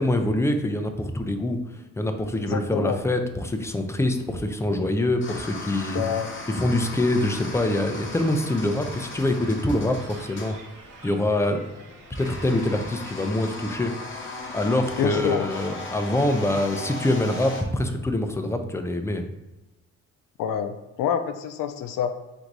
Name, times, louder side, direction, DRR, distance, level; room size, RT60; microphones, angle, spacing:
voice 1, 0.0-1.6 2.0-6.0 6.5-10.6 11.0-11.7 12.2-13.9 14.2-19.2, left 1 dB, 10° left, 6 dB, 0.3 m, -25 dB
voice 2, 2.5-3.0 5.9-6.3 15.0-15.4 20.4-22.1, left 9 dB, 80° left, 9 dB, 0.5 m, -27 dB
sound 1, 3.5-17.6, left 2 dB, 35° left, 0.8 m, -38 dB
sound 2, 7.1-13.7, right 3 dB, 65° right, 0.9 m, -47 dB
3.9 x 2.6 x 4.5 m, 1.0 s
cardioid pair, 120°, 32 cm